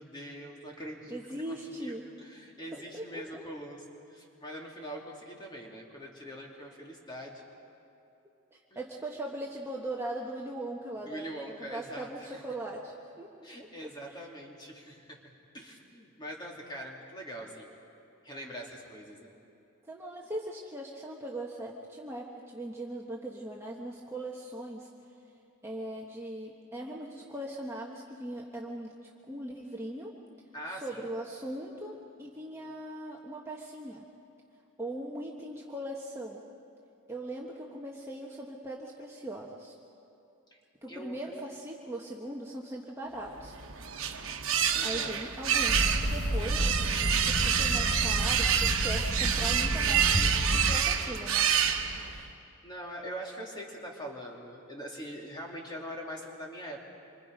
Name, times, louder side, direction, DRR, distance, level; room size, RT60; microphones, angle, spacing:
voice 1, 0.0-1.2 1.5-7.4 8.7-8.8 11.1-12.4 13.4-15.2 15.5-17.7 18.2-19.3 30.5-31.1 40.5-40.6 40.9-41.2 44.7-45.3 52.6-56.8, equal, 20° left, -1 dB, 2.8 m, -43 dB
voice 2, 1.1-2.0 2.7-3.4 4.8-4.9 8.5-13.3 13.8-14.2 19.9-24.9 25.6-30.1 30.7-34.1 34.8-36.4 37.1-39.7 40.8-43.6 44.8-46.9 47.2-51.5, right 1 dB, 10° right, -2 dB, 1.3 m, -40 dB
sound 1, 43.4-52.3, right 8 dB, 60° right, 1.3 m, -28 dB
sound 2, 45.7-50.8, equal, 45° left, 1.3 m, -31 dB
27.5 x 24.5 x 5.3 m, 2.7 s
head